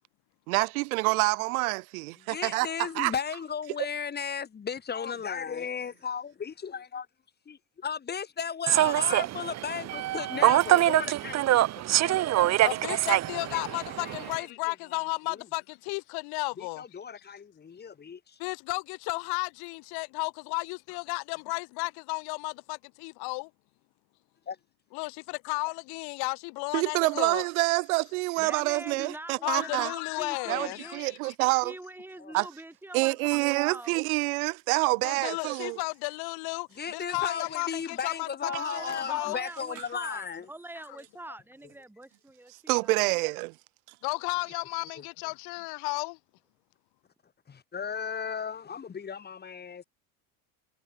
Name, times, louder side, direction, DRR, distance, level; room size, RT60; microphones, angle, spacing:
voice 1, 0.5-2.7 2.9-3.1 26.7-29.9 30.5-31.7 32.3-32.5 32.9-35.8 42.7-43.5, right 25 dB, 80° right, 1.5 m, -27 dB
voice 2, 2.2-7.1 7.5-12.6 13.4-15.4 16.6-18.4 24.5-24.6 32.2-32.3 36.8-40.5 40.9-41.0 45.0-45.1 47.5-49.8, left 6 dB, 25° left, 5.8 m, -36 dB
Human voice / Subway metro underground, 8.7-14.4, right 14 dB, 40° right, 1.4 m, -25 dB
voice 3, 12.6-16.8 18.4-23.5 24.9-27.4 29.4-31.3 35.0-39.4 44.0-46.2, left 30 dB, 65° left, 2.5 m, -33 dB
voice 4, 28.4-31.0 31.6-34.0 38.4-43.1, right 1 dB, 5° right, 5.8 m, -43 dB
supercardioid pair, 135°, 42 cm